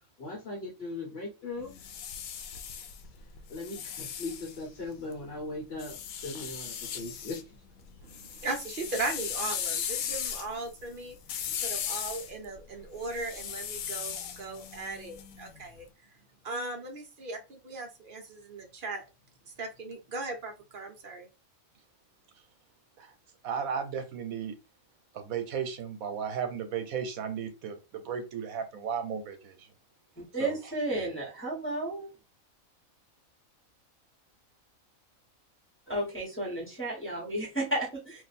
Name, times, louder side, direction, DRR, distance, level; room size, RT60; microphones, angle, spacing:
voice 1, 0.2-1.7 3.5-7.5, left 2 dB, 50° left, -2 dB, 1.2 m, -39 dB
sound 1, 1.6-5.1 5.8-7.4 7.8-15.7, left 8 dB, 85° left, 1.0 m, -37 dB
voice 2, 8.0-11.2 11.6-15.9 16.4-19.0 19.6-21.3, right 2 dB, 45° right, 3 dB, 0.8 m, -38 dB
voice 3, 23.4-24.6 25.1-29.7 30.4-30.6 30.9-31.1, right 7 dB, 80° right, 8 dB, 1.2 m, -35 dB
voice 4, 30.2-32.1 35.9-38.2, right 1 dB, 10° left, -4 dB, 1.2 m, -33 dB
2.6 x 2.6 x 4.1 m, 0.28 s
omnidirectional pair, 1.4 m